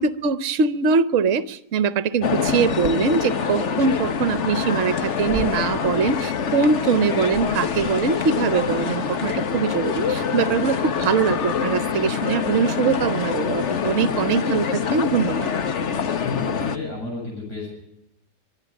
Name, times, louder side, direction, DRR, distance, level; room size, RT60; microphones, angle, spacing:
voice 1, 0.0-15.5, right 5 dB, 55° right, 14 dB, 1.2 m, -22 dB
sound 1, 2.2-16.8, left 6 dB, 50° left, 1.3 m, -25 dB
Human voice, 4.4-6.4 7.3-8.9, right 1 dB, 30° left, 6.6 m, -37 dB
voice 2, 16.2-17.7, left 3 dB, 85° left, -3 dB, 8.5 m, -32 dB
24.0 x 11.0 x 9.9 m, 0.84 s
omnidirectional pair, 1.7 m